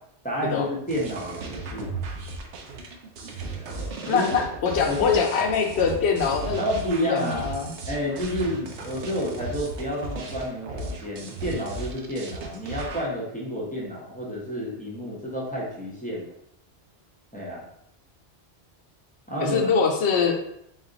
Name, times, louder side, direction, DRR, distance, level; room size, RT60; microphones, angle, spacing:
voice 1, 0.2-2.0 3.5-4.3 4.8-5.2 6.6-7.4 7.9-16.3 17.3-17.7 19.3-19.6, left 1 dB, 10° left, -6 dB, 0.9 m, -30 dB
sound 1, 0.9-13.1, right 3 dB, 90° right, 0.9 m, -36 dB
voice 2, 4.1-7.7 19.4-20.4, left 5 dB, 75° left, 2 dB, 0.9 m, -24 dB
3.9 x 2.4 x 3.9 m, 0.75 s
omnidirectional pair, 1.1 m